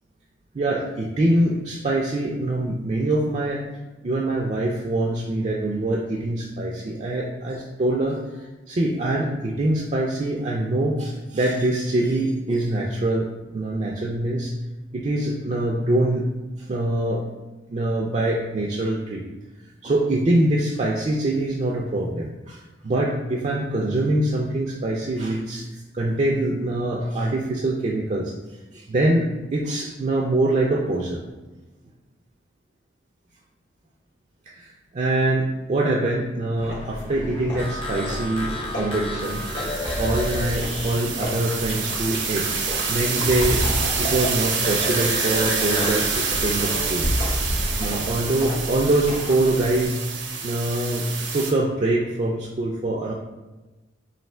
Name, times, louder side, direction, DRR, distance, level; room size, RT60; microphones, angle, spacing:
voice 1, 0.5-3.7 4.0-13.3 13.5-14.5 14.9-16.3 16.7-17.2 17.7-19.2 19.8-31.3 34.5-39.4 40.0-43.6 44.0-47.1 47.8-50.0 50.3-53.1, right 1 dB, 35° right, -2 dB, 0.3 m, -24 dB
sound 1, 36.6-49.9, equal, 75° left, 1.3 m, -31 dB
sound 2, 37.6-44.3 44.6-47.1, left 1 dB, 30° left, 0.5 m, -32 dB
sound 3, 39.2-51.5, right 5 dB, 70° right, 0.7 m, -27 dB
3.2 x 2.7 x 4.3 m, 1.2 s
head